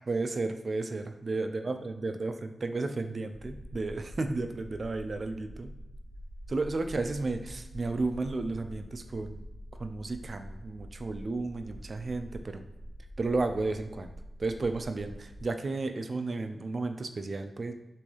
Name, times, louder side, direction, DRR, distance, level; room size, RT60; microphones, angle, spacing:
voice 1, 0.1-5.7 6.5-9.4 9.8-12.6 13.2-14.1 14.4-17.7, right 3 dB, 55° right, 7 dB, 0.3 m, -33 dB
sound 1, 3.3-15.5, equal, 85° left, 0.5 m, -46 dB
3.1 x 2.6 x 3.0 m, 0.99 s
cardioid pair, 45°, 0 cm